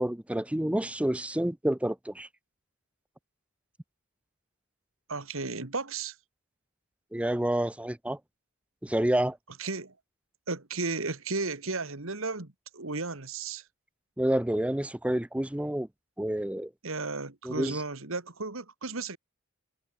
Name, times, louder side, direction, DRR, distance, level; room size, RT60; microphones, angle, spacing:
voice 1, 0.0-2.3 7.1-8.2 8.8-9.4 14.2-15.9 16.2-16.7 17.4-17.8, right 1 dB, 5° right, 0.5 m, -28 dB
voice 2, 5.1-6.2 9.6-9.9 10.5-13.6 16.8-19.2, right 3 dB, 65° right, 2.1 m, -34 dB
head